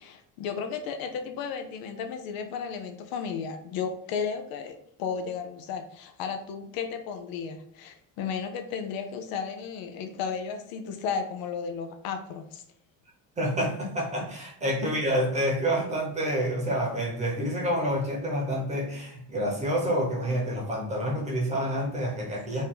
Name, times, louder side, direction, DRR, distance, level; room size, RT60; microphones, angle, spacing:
voice 1, 0.0-12.6, left 6 dB, 60° left, 6 dB, 0.6 m, -34 dB
voice 2, 13.4-22.6, equal, 15° right, -1 dB, 1.0 m, -28 dB
4.7 x 2.7 x 3.8 m, 0.68 s
cardioid pair, 170°, 39 cm